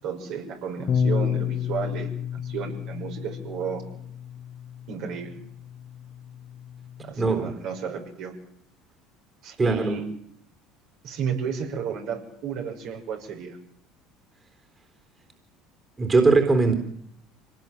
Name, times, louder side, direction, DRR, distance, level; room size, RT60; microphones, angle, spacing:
voice 1, 0.0-3.8 4.9-5.4 7.0-8.3 9.4-10.0 11.0-13.6, right 6 dB, 65° right, 6.1 m, -32 dB
Bass guitar, 0.9-7.1, left 7 dB, 50° left, 2.0 m, -31 dB
voice 2, 7.2-7.5 9.6-9.9 16.0-16.7, right 3 dB, 25° right, 3.9 m, -20 dB
25.0 x 18.5 x 7.6 m
hypercardioid pair, 75°, 0 cm